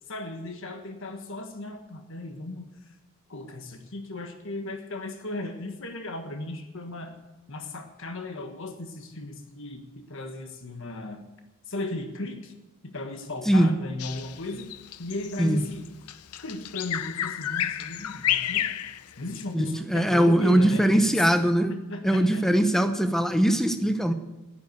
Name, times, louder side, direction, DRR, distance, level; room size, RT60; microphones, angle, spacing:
voice 1, 0.1-2.7 3.3-7.2 7.5-11.2 11.7-12.5 12.8-14.7 15.0-15.9 16.4-18.7 19.2-21.2 21.7-22.4, left 2 dB, 60° left, 6 dB, 1.5 m, -36 dB
Bird vocalization bird call bird song, 14.0-19.5, left 11 dB, 85° left, 0.6 m, -31 dB
voice 2, 19.5-21.7 22.0-24.1, right 1 dB, ahead, 9 dB, 0.8 m, -21 dB
12.0 x 10.5 x 8.0 m, 1.0 s
head